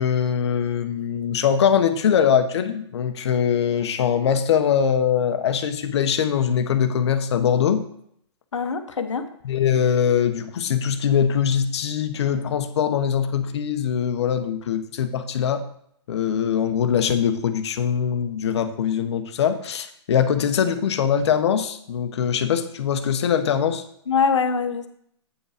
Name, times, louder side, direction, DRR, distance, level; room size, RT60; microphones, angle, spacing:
voice 1, 0.0-7.8 9.4-15.6 16.1-23.8, left 8 dB, 65° left, 8 dB, 1.1 m, -22 dB
voice 2, 8.5-9.3 24.1-24.9, left 5 dB, 90° left, 7 dB, 1.2 m, -23 dB
8.6 x 5.5 x 5.0 m, 0.68 s
hypercardioid pair, 130°, 15 cm